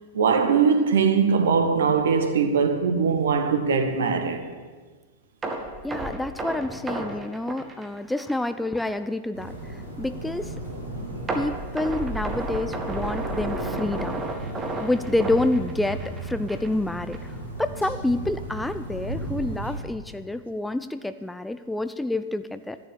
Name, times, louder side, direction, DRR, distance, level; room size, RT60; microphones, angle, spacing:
voice 1, 0.1-4.4, right 5 dB, 65° right, 1.6 m, -21 dB
sound 1, 5.4-8.5 8.8-8.9 9.4-9.5 11.3-16.2 16.5-16.7 17.1-17.2, right 2 dB, 15° right, 2.2 m, -32 dB
voice 2, 5.8-10.5 11.3-14.2 14.8-22.8, left 2 dB, 5° left, 0.5 m, -28 dB
sound 2, 9.3-19.8, right 1 dB, 85° left, 4.8 m, -35 dB
13.5 x 10.5 x 8.8 m
figure-of-eight pair, 90°, 0 cm